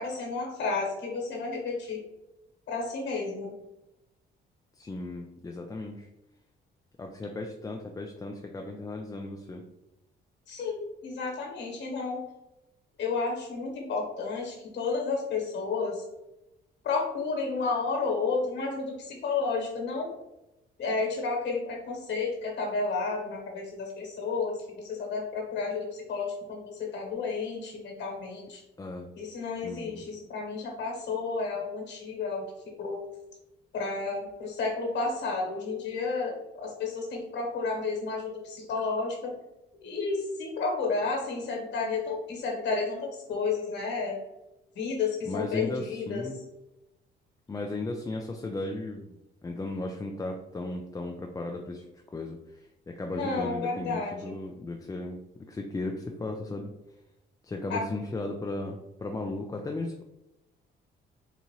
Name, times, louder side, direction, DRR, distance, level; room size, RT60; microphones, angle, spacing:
voice 1, 0.0-2.0 2.7-3.5 10.5-12.2 13.0-16.0 16.8-20.1 20.8-28.6 29.2-32.4 32.8-33.0 33.7-39.3 39.8-44.2 44.7-46.3 53.1-54.3 57.7-57.8, left 4 dB, 60° left, 1 dB, 1.3 m, -31 dB
voice 2, 4.8-6.1 7.0-9.6 28.8-29.1 29.6-30.0 45.3-46.4 47.5-49.1 49.4-51.8 52.1-55.2 55.5-56.7 57.4-60.0, left 2 dB, 15° left, 2 dB, 0.4 m, -36 dB
4.1 x 2.5 x 3.0 m, 0.93 s
cardioid pair, 90°, 20 cm